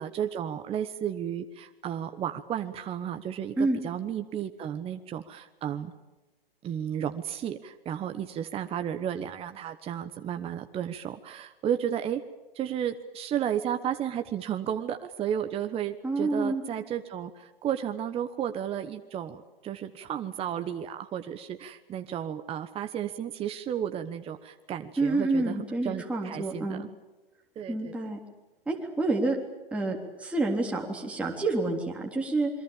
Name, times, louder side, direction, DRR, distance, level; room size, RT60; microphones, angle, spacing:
voice 1, 0.0-5.9 6.6-12.2 12.5-26.9 27.5-27.9, right 9 dB, 20° right, 8 dB, 1.1 m, -33 dB
voice 2, 16.0-16.6 25.0-26.8 27.7-28.2 28.7-29.4 29.7-32.5, right 2 dB, 5° right, -1 dB, 3.5 m, -28 dB
28.0 x 23.5 x 7.3 m, 1.1 s
hypercardioid pair, 120°, 30 cm